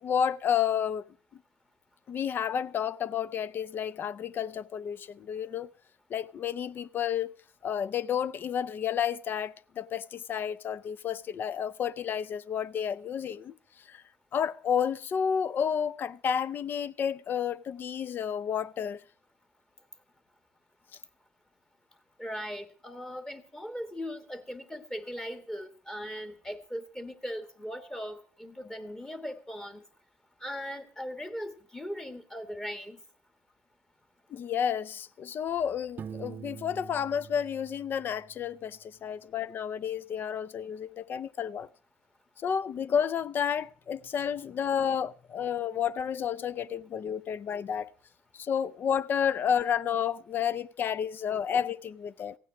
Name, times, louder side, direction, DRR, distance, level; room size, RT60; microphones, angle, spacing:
voice 1, 0.0-1.1 2.1-5.7 6.1-7.3 7.6-13.5 13.9-14.0 14.3-19.0 34.3-41.7 42.4-47.9 48.3-52.4, left 8 dB, 45° left, 0.5 m, -31 dB
voice 2, 22.2-29.8 30.4-33.0, equal, 10° left, 1.6 m, -39 dB
Piano, 36.0-38.7, right 7 dB, 40° right, 0.5 m, -45 dB
15.5 x 9.1 x 5.9 m
cardioid pair, 100°, 5 cm